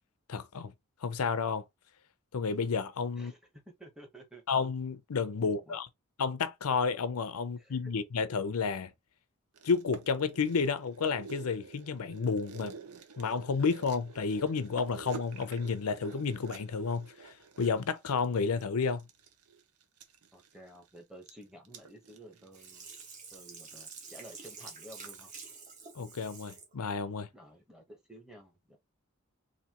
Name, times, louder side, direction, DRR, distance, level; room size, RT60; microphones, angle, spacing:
voice 1, 0.3-0.7 1.0-1.6 2.3-3.3 4.5-5.8 6.2-8.9 9.6-12.7 13.2-17.1 17.6-19.0 26.0-27.3, left 5 dB, 85° left, 0.5 m, -31 dB
voice 2, 3.1-4.4 5.4-5.8 7.6-7.8 20.3-22.9 23.3-25.3 27.3-28.8, right 1 dB, 5° right, 1.0 m, -52 dB
sound 1, 9.5-25.2 25.5-25.6, right 5 dB, 85° right, 0.8 m, -50 dB
Sink (filling or washing), 22.5-26.7 27.2-27.3, right 4 dB, 35° right, 1.3 m, -48 dB
4.1 x 2.7 x 2.9 m
head